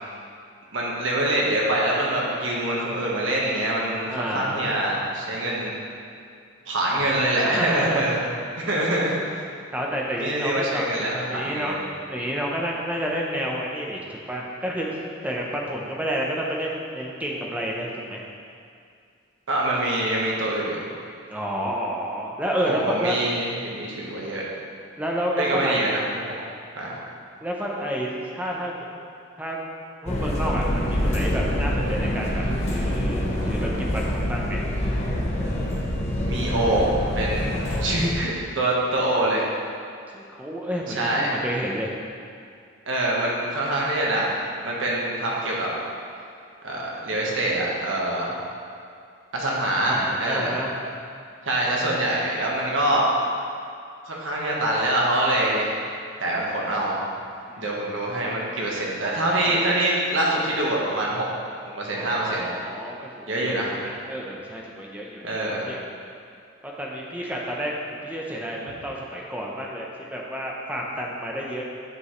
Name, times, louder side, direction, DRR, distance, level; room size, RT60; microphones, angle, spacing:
voice 1, 0.7-5.7 6.6-8.2 8.7-9.2 10.2-11.8 19.5-20.9 22.7-24.5 25.4-26.3 26.7-27.0 36.3-37.5 37.8-39.5 40.9-41.3 42.9-45.7 46.6-48.4 49.3-50.6 51.4-53.1 54.0-55.7 56.2-57.0 57.6-61.3 61.6-62.5 63.3-63.7 65.2-65.6, right 1 dB, 75° right, -4 dB, 1.4 m, -25 dB
voice 2, 4.0-4.7 6.9-7.1 7.4-8.3 9.7-10.9 11.3-14.9 15.2-18.2 21.3-23.2 25.0-25.8 27.4-28.7 29.4-34.6 40.1-41.9 49.9-50.8 57.5-57.7 59.4-59.6 61.9-65.8 66.6-67.7 68.0-71.6, equal, 10° right, -2 dB, 0.7 m, -30 dB
sound 1, 30.1-38.1, left 1 dB, 35° left, 0.9 m, -26 dB
9.5 x 5.3 x 3.2 m, 2.3 s
head